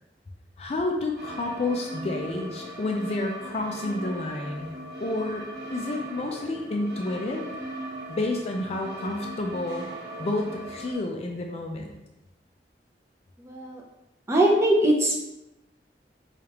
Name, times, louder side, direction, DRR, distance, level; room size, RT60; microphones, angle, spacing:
voice 1, 0.6-4.7 5.0-7.5 8.1-9.9 10.2-11.9, left 2 dB, 35° left, 2 dB, 0.4 m, -30 dB
sound 1, 1.2-10.9, right 1 dB, 60° right, 0.8 m, -39 dB
voice 2, 13.4-13.8 14.3-15.2, right 1 dB, 15° right, -2 dB, 0.6 m, -21 dB
4.8 x 2.4 x 2.9 m, 0.92 s
head